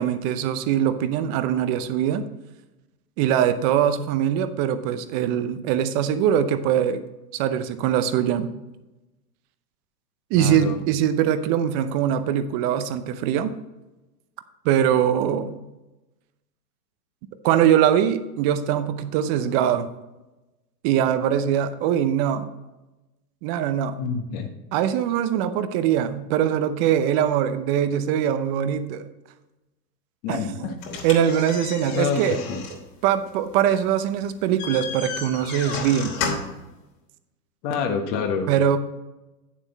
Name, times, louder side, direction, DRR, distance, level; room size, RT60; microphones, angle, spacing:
voice 1, 0.0-2.2 3.2-7.0 7.3-8.5 10.3-13.5 14.6-15.6 17.4-19.9 20.8-22.5 23.4-24.0 24.7-29.1 30.3-30.7 31.0-32.4 33.0-36.1 38.5-38.8, right 9 dB, 35° right, 11 dB, 0.8 m, -22 dB
voice 2, 10.3-10.8 24.0-24.5 30.2-30.7 31.9-32.6 37.6-38.5, left 6 dB, 40° left, 5 dB, 1.4 m, -27 dB
sound 1, 30.8-36.6, left 5 dB, 55° left, 3.3 m, -33 dB
8.9 x 7.5 x 4.1 m, 1.0 s
hypercardioid pair, 120°, 47 cm